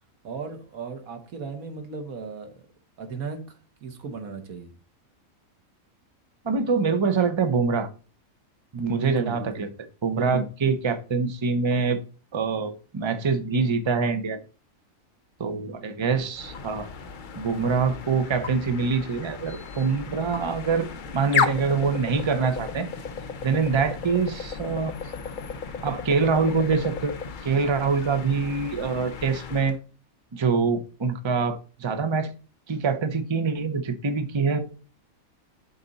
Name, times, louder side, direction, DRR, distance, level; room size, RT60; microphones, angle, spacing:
voice 1, 0.2-2.6 3.0-4.7 9.0-9.7, right 4 dB, 90° right, 6 dB, 1.7 m, -36 dB
voice 2, 6.4-7.9 8.7-9.7 10.0-12.0 12.3-14.4 15.4-16.9 17.4-20.9 21.1-22.9 23.4-24.9 25.8-27.1 27.4-29.8 30.3-32.3 32.7-34.6, right 5 dB, 25° right, 8 dB, 0.7 m, -25 dB
sound 1, 16.3-29.8, left 6 dB, 45° left, 0.7 m, -34 dB
11.5 x 4.2 x 4.0 m, 0.36 s
omnidirectional pair, 1.4 m